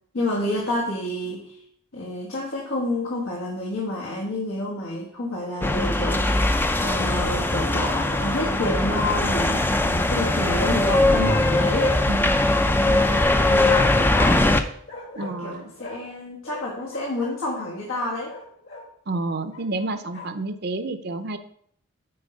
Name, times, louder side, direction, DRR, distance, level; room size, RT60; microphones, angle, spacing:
voice 1, 0.1-1.6 1.9-12.0 12.8-14.4 15.4-18.3, left 1 dB, 90° left, -3 dB, 1.5 m, -29 dB
Bark, 5.5-6.1 8.6-9.7 11.0-11.9 12.6-13.7 14.4-16.2 16.4-18.9 19.5-20.5, left 2 dB, 65° left, 2.0 m, -41 dB
sound 1, 5.6-14.6, left 2 dB, 10° left, 0.3 m, -21 dB
voice 2, 15.1-15.6 19.1-21.4, right 2 dB, 50° right, 9 dB, 0.6 m, -29 dB
8.7 x 4.5 x 5.0 m, 0.65 s
head